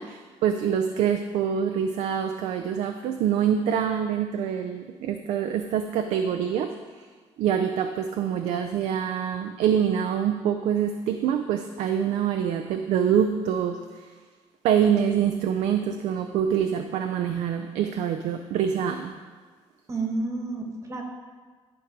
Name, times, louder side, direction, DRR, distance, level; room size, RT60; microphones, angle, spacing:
voice 1, 0.0-7.1 7.4-14.1 14.6-19.2, right 8 dB, 90° right, 6 dB, 0.5 m, -25 dB
voice 2, 19.9-21.0, right 3 dB, 25° right, 2 dB, 1.1 m, -30 dB
11.5 x 4.7 x 5.1 m, 1.5 s
cardioid pair, 150°, 11 cm